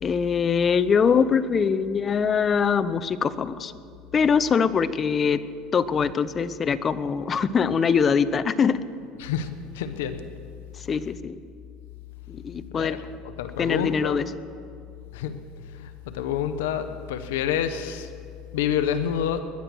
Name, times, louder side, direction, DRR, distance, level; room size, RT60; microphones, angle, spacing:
voice 1, 0.0-3.7 4.1-5.4 5.7-8.8 10.9-11.4 12.3-13.0 13.6-14.3, left 6 dB, 30° left, 15 dB, 0.7 m, -23 dB
voice 2, 9.2-10.2 12.7-13.1 13.4-14.3 15.1-15.4 15.7-18.1 18.5-19.4, left 9 dB, 85° left, 10 dB, 0.9 m, -28 dB
21.0 x 11.0 x 6.2 m, 2.3 s
supercardioid pair, 105°, 0 cm